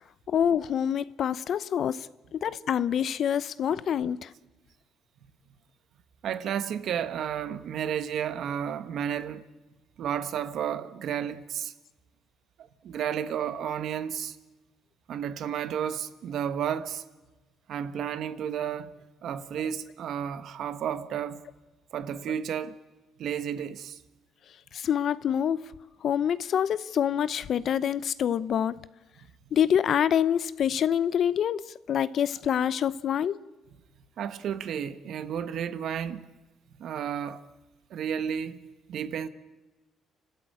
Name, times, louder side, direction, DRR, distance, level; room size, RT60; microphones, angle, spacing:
voice 1, 0.3-2.1 2.3-4.3 24.7-25.7 26.0-28.8 29.5-33.4, left 9 dB, 55° left, 0.7 m, -26 dB
voice 2, 6.2-9.4 10.0-11.7 12.6-14.3 15.1-17.0 17.7-18.9 19.2-21.4 21.9-22.8 23.2-24.0 34.2-36.3 36.8-37.4 37.9-38.6 38.9-39.3, right 8 dB, 60° right, 1.4 m, -32 dB
30.0 x 13.0 x 8.7 m
cardioid pair, 110°, 0 cm